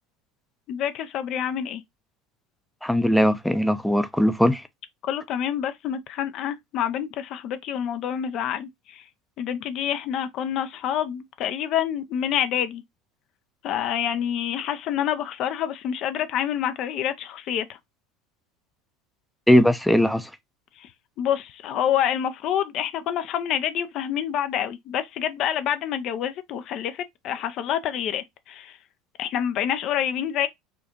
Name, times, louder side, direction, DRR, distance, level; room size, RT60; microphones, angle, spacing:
voice 1, 0.7-1.8 5.0-9.0 9.4-12.8 13.6-17.6 20.8-20.9 21.2-28.8 29.2-30.5, left 10 dB, 55° left, 0.5 m, -27 dB
voice 2, 2.8-4.6 19.5-20.3, equal, 5° left, 0.6 m, -19 dB
4.3 x 2.5 x 2.9 m
hypercardioid pair, 75°, 0 cm